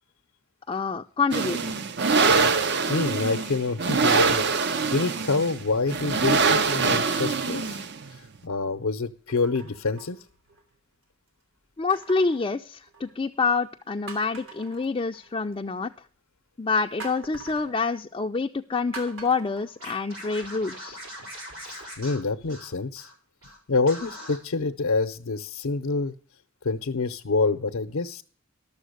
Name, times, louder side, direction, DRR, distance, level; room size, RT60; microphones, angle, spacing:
voice 1, 0.7-1.7 11.8-15.9 16.6-21.0, left 4 dB, 25° left, 3 dB, 0.4 m, -27 dB
sound 1, 1.3-8.1, right 4 dB, 55° right, 0.6 m, -24 dB
voice 2, 2.9-10.2 21.6-23.1 23.7-26.1 26.6-28.2, left 3 dB, 80° left, 5 dB, 0.7 m, -27 dB
sound 2, 9.3-10.7 11.9-13.3 13.7-13.8 14.1-15.5 17.0-17.7 18.9-20.5 20.9-21.0, right 4 dB, 70° right, 2.9 m, -45 dB
Scratching (performance technique), 19.8-23.1 23.4-23.6 23.9-24.4, equal, 85° right, 4.9 m, -41 dB
12.0 x 7.1 x 6.5 m, 0.43 s
head